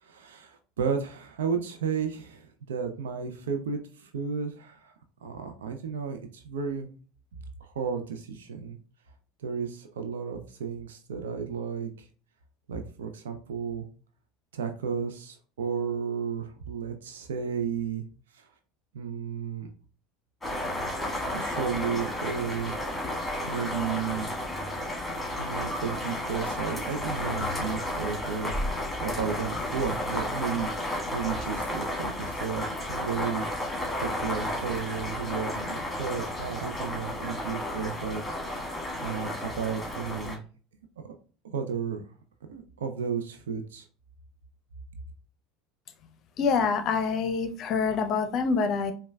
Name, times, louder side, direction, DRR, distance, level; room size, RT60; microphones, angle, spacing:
voice 1, 0.0-4.9 5.2-6.9 7.6-8.8 9.4-12.1 12.7-13.9 14.5-18.0 18.3-18.5 18.9-19.7 21.3-22.7 23.5-24.3 25.4-28.5 29.0-30.7 31.1-33.5 34.0-38.2 39.0-40.4 41.0-41.1 41.4-42.0 42.5-43.9, right 6 dB, 80° right, 6 dB, 0.4 m, -33 dB
sound 1, 20.4-40.4, left 1 dB, 10° left, 1.5 m, -32 dB
voice 2, 46.4-48.9, left 5 dB, 50° left, 9 dB, 0.6 m, -26 dB
4.9 x 2.2 x 2.2 m, 0.39 s
hypercardioid pair, 75°, 0 cm